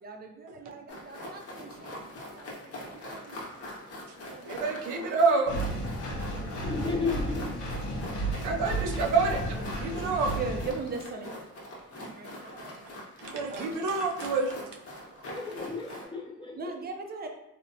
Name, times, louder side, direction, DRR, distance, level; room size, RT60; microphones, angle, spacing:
voice 1, 0.0-3.4 4.1-5.2 5.9-6.6 8.8-8.9 10.4-11.4 11.7-13.0 13.5-13.8 14.9-15.0 16.6-17.3, right 4 dB, 35° right, 4 dB, 0.4 m, -41 dB
sound 1, 0.9-16.1, left 1 dB, 50° left, 0.8 m, -43 dB
voice 2, 4.4-5.5 8.4-10.3 13.2-14.6, right 4 dB, 85° right, 3 dB, 0.5 m, -27 dB
Engine, 5.5-10.7, right 1 dB, 90° left, 0.6 m, -33 dB
voice 3, 6.6-8.4 15.3-16.7, left 4 dB, 15° left, 0 dB, 0.6 m, -35 dB
2.8 x 2.0 x 2.6 m, 0.85 s
cardioid pair, 90°, 30 cm